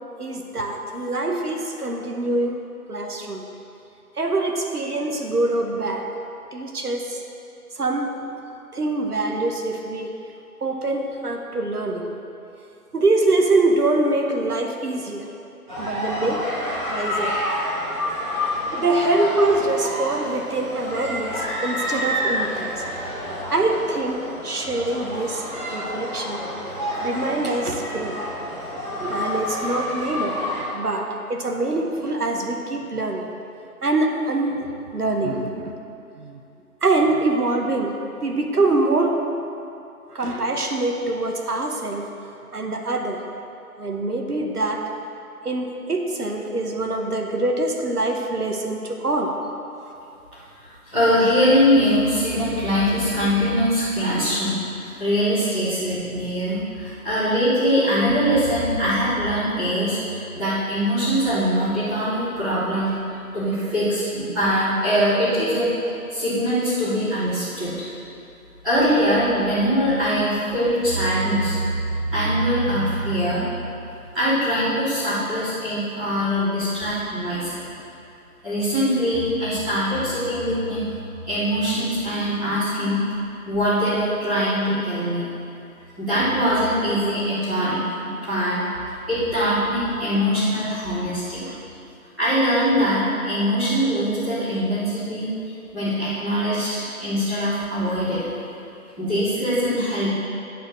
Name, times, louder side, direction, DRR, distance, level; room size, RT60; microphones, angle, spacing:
voice 1, 0.2-2.6 2.9-3.4 4.2-6.1 6.5-7.2 7.8-8.2 8.7-10.1 10.6-12.1 12.9-15.3 15.8-16.4 16.9-17.3 18.7-22.8 23.5-25.4 25.7-26.4 27.0-28.2 29.0-30.4 30.7-33.3 33.8-35.5 36.2-36.4 36.8-38.0 38.2-39.2 40.1-42.1 42.5-43.2 43.8-44.8 45.4-49.3 91.5-91.6, right 2 dB, 80° right, 2 dB, 1.1 m, -24 dB
sound 1, 15.7-30.6, equal, 30° right, 2.1 m, -28 dB
voice 2, 50.6-54.6 55.0-62.9 63.3-65.7 66.1-67.9 68.6-73.4 74.1-77.6 78.4-80.8 81.3-83.0 83.4-85.3 86.0-88.6 89.1-91.4 92.2-95.3 95.7-98.2 99.0-100.1, equal, ahead, -21 dB, 1.3 m, -22 dB
10.5 x 4.3 x 6.3 m, 2.7 s
figure-of-eight pair, 155°, 45 cm